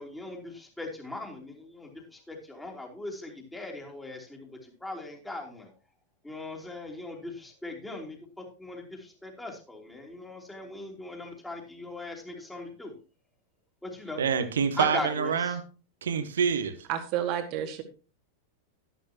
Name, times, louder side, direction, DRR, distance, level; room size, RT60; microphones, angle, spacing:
voice 1, 0.0-5.7 6.2-12.9 13.8-14.2 14.8-15.6, left 2 dB, 5° left, 3.2 m, -39 dB
voice 2, 14.2-15.6 16.0-16.8, right 6 dB, 65° right, 1.3 m, -26 dB
voice 3, 16.9-17.8, right 10 dB, 45° right, 2.0 m, -30 dB
12.0 x 11.0 x 2.9 m
figure-of-eight pair, 90°, 0 cm